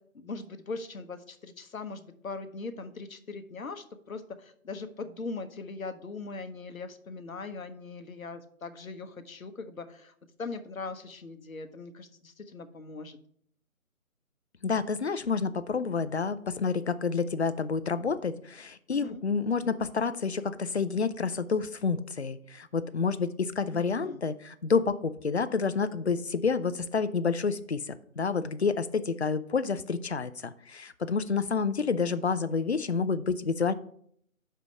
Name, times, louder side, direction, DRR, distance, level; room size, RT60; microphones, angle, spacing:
voice 1, 0.1-13.2 18.9-19.2 23.7-24.2, left 3 dB, 70° left, 9 dB, 1.0 m, -40 dB
voice 2, 14.6-33.7, left 5 dB, 50° left, 12 dB, 0.4 m, -29 dB
5.6 x 5.0 x 6.2 m, 0.66 s
figure-of-eight pair, 170°, 42 cm